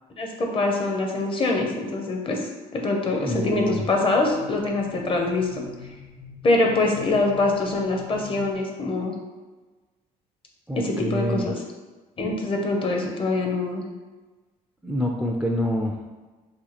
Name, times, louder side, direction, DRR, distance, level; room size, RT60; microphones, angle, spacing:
voice 1, 0.2-5.6 6.4-9.2 10.7-11.5 12.2-13.8, left 2 dB, 30° left, 1 dB, 0.6 m, -24 dB
voice 2, 3.2-3.9 10.7-11.5 14.8-16.0, equal, 5° right, -1 dB, 0.3 m, -26 dB
sound 1, 3.3-8.6, left 6 dB, 50° left, 1.3 m, -44 dB
2.8 x 2.4 x 4.0 m, 1.3 s
cardioid pair, 110°, 17 cm